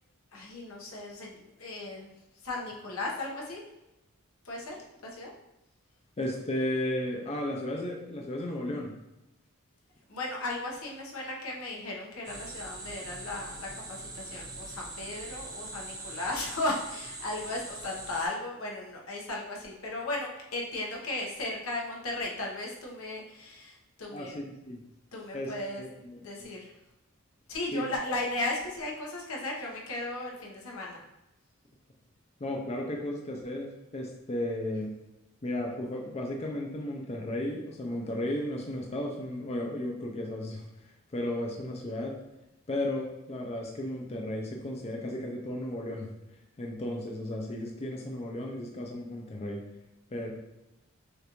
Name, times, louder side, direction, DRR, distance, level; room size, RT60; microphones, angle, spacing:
voice 1, 0.3-2.1 2.4-3.7 4.4-4.8 5.1-5.3 10.1-24.3 25.1-25.8 26.2-26.7 27.5-31.0, left 2 dB, 80° left, -2 dB, 1.1 m, -36 dB
voice 2, 6.2-9.0 24.1-24.8 25.3-25.5 25.8-26.5 27.7-27.9 32.4-34.9 35.4-40.7 41.1-42.2 42.7-46.1 46.6-49.6 50.1-50.3, left 1 dB, 30° left, 0 dB, 0.5 m, -34 dB
sound 1, 12.2-18.3, right 2 dB, 20° right, 0.9 m, -42 dB
6.5 x 2.5 x 3.0 m, 0.95 s
head